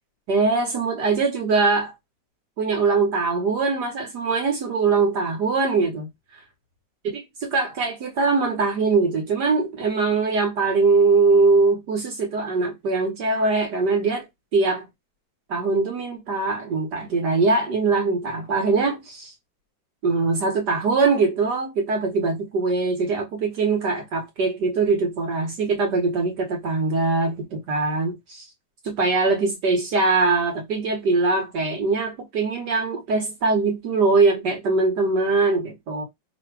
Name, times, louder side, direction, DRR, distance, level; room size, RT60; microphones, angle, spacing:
voice 1, 0.3-1.9 2.6-6.4 7.4-14.3 14.5-14.8 15.5-19.3 20.0-28.5 28.8-36.0, right 3 dB, 65° right, 1.5 m, -22 dB
3.3 x 2.6 x 4.5 m
omnidirectional pair, 2.1 m